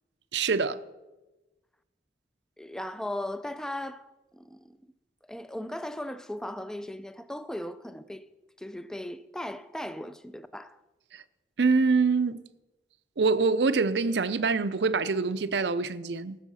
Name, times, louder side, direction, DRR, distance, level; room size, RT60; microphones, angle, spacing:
voice 1, 0.3-0.8 11.1-11.2 11.6-12.4 13.2-16.4, right 4 dB, 85° right, 0.6 m, -25 dB
voice 2, 2.6-4.8 5.3-8.3 8.6-10.8, left 1 dB, 5° left, 0.4 m, -37 dB
18.5 x 7.0 x 5.7 m
head